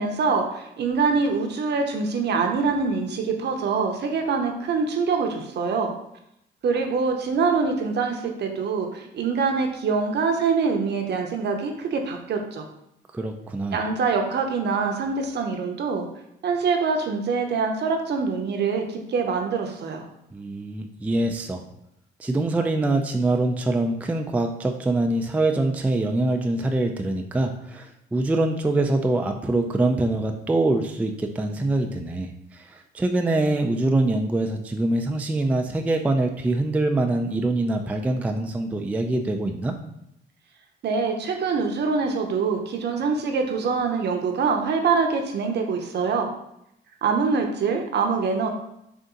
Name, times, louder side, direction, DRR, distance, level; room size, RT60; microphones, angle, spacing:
voice 1, 0.0-5.9 6.6-12.7 13.7-16.1 16.4-20.0 40.8-46.3 47.0-48.5, right 5 dB, 60° right, 4 dB, 0.7 m, -24 dB
voice 2, 13.1-13.8 20.3-21.6 22.2-39.7, right 2 dB, 5° right, 4 dB, 0.3 m, -24 dB
3.9 x 2.5 x 3.7 m, 0.79 s
cardioid pair, 90°, 20 cm